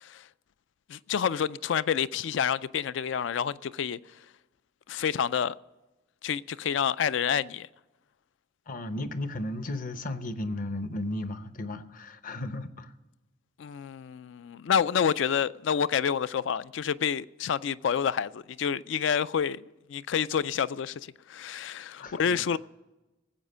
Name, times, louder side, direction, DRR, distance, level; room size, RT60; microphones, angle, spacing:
voice 1, 0.9-4.0 4.9-5.5 6.2-7.7 13.6-22.6, left 7 dB, 65° left, 0.4 m, -28 dB
voice 2, 8.7-12.9 22.0-22.6, left 1 dB, 45° left, 0.8 m, -35 dB
18.5 x 8.0 x 5.5 m
head